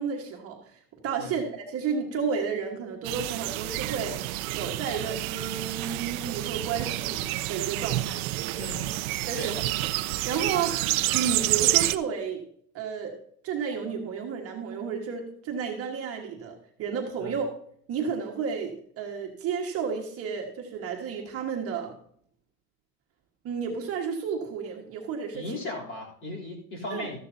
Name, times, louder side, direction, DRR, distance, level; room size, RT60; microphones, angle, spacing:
voice 1, 0.0-4.2 4.5-8.2 9.3-9.6 10.2-10.8 11.1-12.4 12.7-13.1 13.4-17.5 17.9-21.9 23.4-25.4 26.9-27.1, right 6 dB, 30° right, 0 dB, 1.5 m, -32 dB
sound 1, 3.0-12.0, right 17 dB, 65° right, 0.8 m, -29 dB
voice 2, 8.6-8.9 9.3-9.5 17.2-17.4 25.3-27.2, left 1 dB, 25° left, -2 dB, 3.3 m, -36 dB
14.0 x 11.5 x 2.7 m, 0.62 s
supercardioid pair, 145°, 46 cm